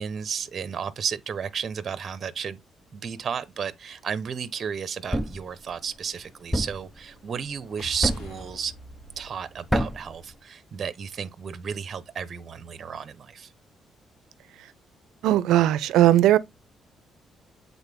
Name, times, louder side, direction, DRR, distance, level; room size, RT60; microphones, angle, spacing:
voice 1, 0.0-2.6 2.9-8.7 9.2-13.5, right 7 dB, 50° right, 1.0 m, -33 dB
Thump thud, 5.1-5.5 6.5-6.9 8.0-8.4 9.7-10.1, equal, 5° left, 0.7 m, -26 dB
sound 1, 6.8-10.8, left 2 dB, 85° left, 2.7 m, -48 dB
voice 2, 15.2-16.4, right 13 dB, 85° right, 0.6 m, -18 dB
8.0 x 4.1 x 3.6 m
cardioid pair, 90°, 0 cm